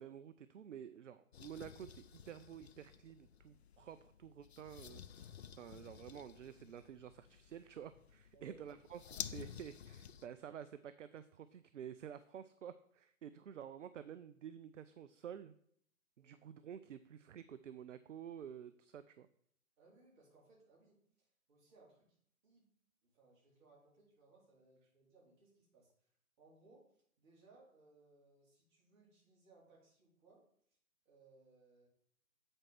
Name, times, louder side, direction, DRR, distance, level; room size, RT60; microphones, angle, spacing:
voice 1, 0.0-5.3 5.6-15.5 16.2-19.3, right 9 dB, 60° right, 13 dB, 0.5 m, -51 dB
sound 1, 1.3-10.3, left 8 dB, 50° left, 0.5 m, -52 dB
voice 2, 19.8-22.2 22.4-22.7 23.0-25.9 26.4-26.9 27.2-30.4 31.1-31.9, right 3 dB, 35° right, -4 dB, 3.9 m, -66 dB
8.0 x 4.5 x 5.8 m, 0.65 s
figure-of-eight pair, 140°, 42 cm